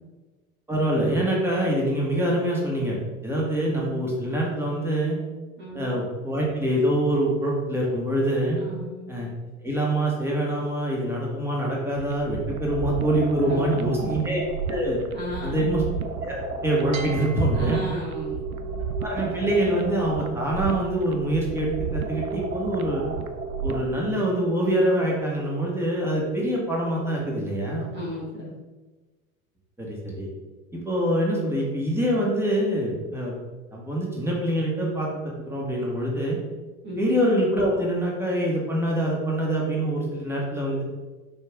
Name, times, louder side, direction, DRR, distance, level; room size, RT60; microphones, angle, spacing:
voice 1, 0.7-5.2 5.7-8.6 9.1-9.3 9.6-14.4 14.7-15.0 15.4-17.8 19.0-23.1 23.6-27.9 29.8-30.3 30.7-33.3 33.7-35.1 35.4-36.4 37.0-40.8, right 1 dB, 5° right, -3 dB, 1.9 m, -25 dB
voice 2, 5.6-5.9 8.6-9.0 13.5-14.1 15.1-15.7 17.5-18.7 27.9-28.5 36.8-37.1, equal, 25° right, -4 dB, 1.5 m, -35 dB
sound 1, 12.0-24.0, right 5 dB, 85° right, 0.6 m, -33 dB
sound 2, 13.0-16.4 16.9-28.0, right 4 dB, 70° right, 0.9 m, -40 dB
10.0 x 3.3 x 3.8 m, 1.2 s
figure-of-eight pair, 75°, 43 cm